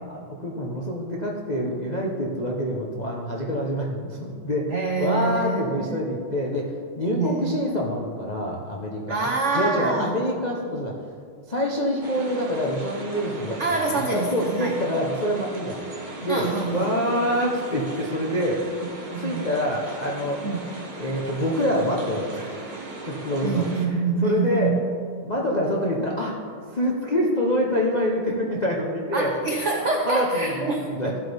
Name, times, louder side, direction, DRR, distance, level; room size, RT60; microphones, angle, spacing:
voice 1, 0.1-10.9 11.5-18.6 19.2-20.4 21.0-22.7 23.1-23.6 24.2-24.8 25.2-26.4 26.7-29.3 30.0-31.1, equal, 65° left, -3 dB, 0.4 m, -26 dB
voice 2, 4.7-6.0 7.1-7.6 9.1-10.1 13.6-14.7 16.3-16.9 18.8-19.5 20.4-20.6 23.4-24.8 29.1-30.9, right 4 dB, 80° right, 1 dB, 0.6 m, -26 dB
sound 1, 12.0-23.9, right 2 dB, 30° right, 1.1 m, -37 dB
14.5 x 8.0 x 3.4 m, 2.2 s
omnidirectional pair, 2.3 m